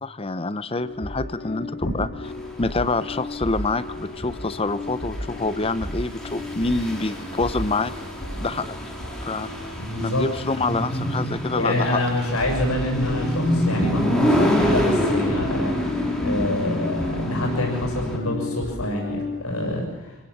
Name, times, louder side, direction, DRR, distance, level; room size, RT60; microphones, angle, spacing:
voice 1, 0.0-2.1 2.6-7.9 8.4-8.8 9.2-9.7 10.0-12.0, left 3 dB, 25° left, 14 dB, 0.7 m, -26 dB
sound 1, 0.8-11.0 11.2-11.4 12.2-19.4, left 2 dB, 60° left, 4.2 m, -34 dB
sound 2, 2.3-18.2, equal, 5° left, 3.5 m, -27 dB
voice 2, 9.8-10.3 11.5-15.8 16.2-20.2, left 1 dB, 85° left, 0 dB, 7.1 m, -27 dB
26.0 x 17.5 x 7.2 m, 0.97 s
head